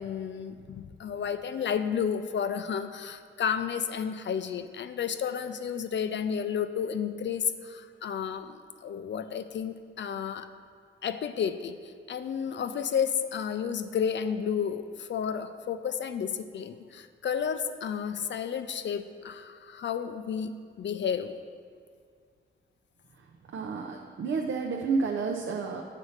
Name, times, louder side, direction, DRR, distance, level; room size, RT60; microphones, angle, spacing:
voice 1, 0.0-10.5 11.0-21.4, left 7 dB, 60° left, 10 dB, 0.4 m, -32 dB
voice 2, 23.5-25.8, right 4 dB, 70° right, 1 dB, 0.6 m, -30 dB
8.1 x 4.2 x 6.4 m, 2.2 s
wide cardioid pair, 135°, 21 cm